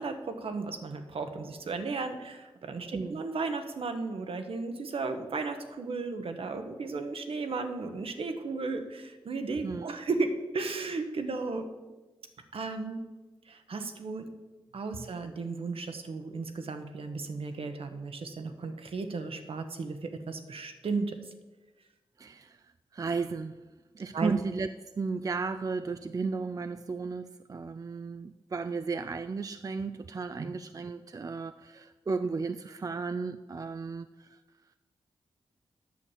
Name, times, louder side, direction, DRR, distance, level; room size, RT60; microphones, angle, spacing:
voice 1, 0.0-11.7 12.5-13.0 13.5-14.3 14.7-21.2 24.1-24.3 30.4-30.5, right 3 dB, 65° right, 7 dB, 1.1 m, -35 dB
voice 2, 9.6-10.0 22.2-22.6 22.9-23.6 23.9-24.7 25.0-34.4, right 4 dB, 35° right, 10 dB, 0.4 m, -34 dB
8.3 x 6.6 x 7.3 m, 1.2 s
cardioid pair, 50°, 10 cm